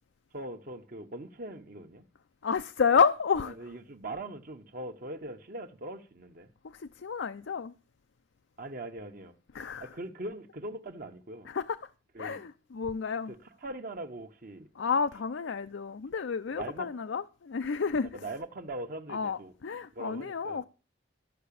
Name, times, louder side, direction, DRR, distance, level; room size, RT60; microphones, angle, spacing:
voice 1, 0.3-2.0 3.6-6.5 8.6-9.3 9.8-11.5 12.1-12.4 13.3-14.7 16.5-16.9 18.1-19.5 19.9-20.6, right 2 dB, 50° right, 1.0 m, -41 dB
voice 2, 2.4-3.6 6.6-7.7 9.5-9.9 11.5-11.9 12.2-13.3 14.7-18.3 19.1-20.6, left 6 dB, 85° left, 0.5 m, -30 dB
13.0 x 5.8 x 8.5 m
head